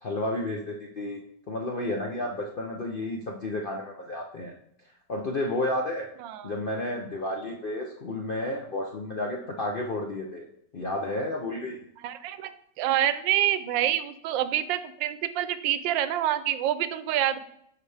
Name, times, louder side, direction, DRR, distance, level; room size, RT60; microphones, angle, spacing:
voice 1, 0.0-1.2 1.5-4.5 5.1-6.1 6.4-10.4 10.7-11.8, left 1 dB, 75° left, 0 dB, 0.5 m, -31 dB
voice 2, 6.2-6.5 12.0-17.4, right 11 dB, 90° right, 13 dB, 1.3 m, -27 dB
10.5 x 4.9 x 3.3 m, 0.73 s
omnidirectional pair, 2.0 m